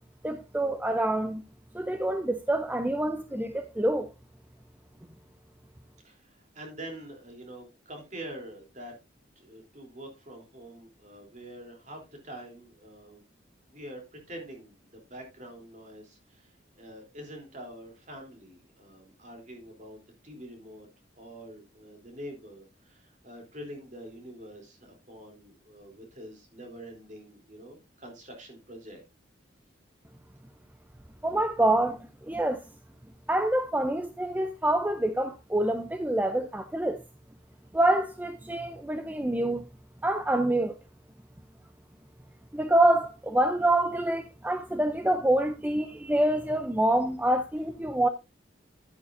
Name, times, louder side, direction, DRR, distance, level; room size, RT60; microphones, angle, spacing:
voice 1, 0.2-1.4 1.7-4.1 31.2-32.0 32.3-32.6 33.3-37.0 37.7-39.6 40.0-40.7 42.5-48.1, right 1 dB, 10° right, 0.5 m, -26 dB
voice 2, 6.0-8.9 9.3-13.2 13.7-20.9 21.2-29.0, right 1 dB, 40° right, 3.2 m, -45 dB
10.5 x 9.7 x 2.6 m
head